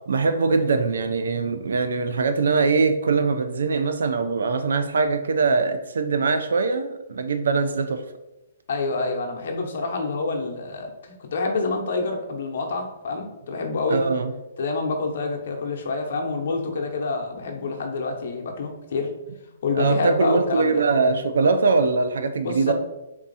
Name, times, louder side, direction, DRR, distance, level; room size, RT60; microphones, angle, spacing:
voice 1, 0.1-8.0 13.9-14.3 19.8-22.7, right 4 dB, 80° right, 9 dB, 0.5 m, -22 dB
voice 2, 8.7-14.0 14.6-19.1 19.6-20.8 22.4-22.7, left 3 dB, 60° left, 2 dB, 0.8 m, -27 dB
3.5 x 2.8 x 4.0 m, 0.96 s
hypercardioid pair, 155°, 0 cm